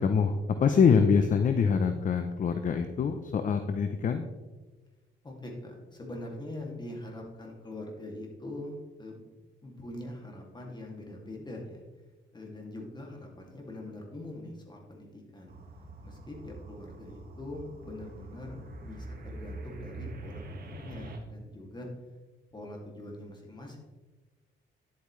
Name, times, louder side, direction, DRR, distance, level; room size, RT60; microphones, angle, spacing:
voice 1, 0.0-4.3, left 6 dB, 40° left, 8 dB, 0.6 m, -25 dB
voice 2, 5.2-9.2 9.6-11.8 12.3-15.5 16.0-20.4 20.7-21.9 22.5-23.8, left 1 dB, 20° left, 0 dB, 2.4 m, -43 dB
sound 1, 15.5-21.2, right 2 dB, 50° right, 1.7 m, -44 dB
10.5 x 8.4 x 3.2 m, 1.2 s
cardioid pair, 90°, 20 cm